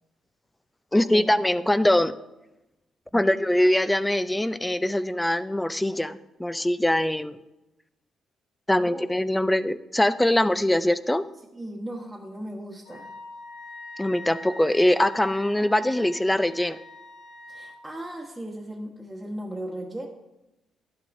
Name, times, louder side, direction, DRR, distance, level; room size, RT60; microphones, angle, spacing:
voice 1, 0.9-2.1 3.1-7.4 8.7-11.2 14.0-16.8, left 1 dB, 10° left, 14 dB, 0.4 m, -22 dB
voice 2, 11.5-13.1 17.5-20.1, right 1 dB, 5° right, -5 dB, 1.2 m, -37 dB
Wind instrument woodwind instrument, 12.8-17.8, left 1 dB, 90° left, 1.3 m, -43 dB
11.5 x 9.1 x 2.6 m, 0.95 s
cardioid pair, 90°, 0 cm